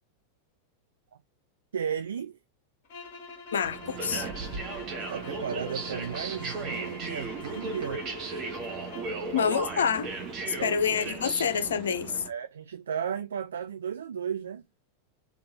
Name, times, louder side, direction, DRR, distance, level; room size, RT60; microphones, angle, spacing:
voice 1, 1.7-2.4 5.1-8.0 10.6-10.8 12.3-14.6, right 8 dB, 65° right, 0.3 m, -34 dB
sound 1, 2.8-9.2, left 3 dB, 45° left, 1.0 m, -46 dB
voice 2, 3.5-4.3 9.3-10.1 10.5-12.3, left 7 dB, 65° left, 0.5 m, -27 dB
sound 2, 3.6-12.3, right 3 dB, 35° right, 1.0 m, -36 dB
3.3 x 2.4 x 3.1 m
figure-of-eight pair, 90°, 0 cm